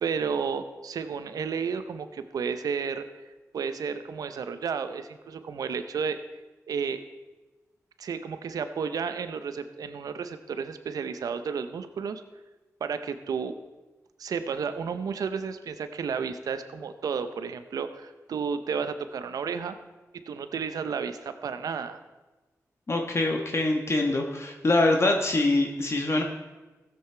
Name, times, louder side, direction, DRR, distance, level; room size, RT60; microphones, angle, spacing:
voice 1, 0.0-6.2 6.7-7.0 8.0-12.2 12.8-13.5 14.2-19.7 20.3-22.0, right 6 dB, 85° right, 10 dB, 0.7 m, -32 dB
voice 2, 22.9-26.2, left 2 dB, 45° left, 2 dB, 1.3 m, -24 dB
15.0 x 7.8 x 4.5 m, 1.2 s
cardioid pair, 50°, 6 cm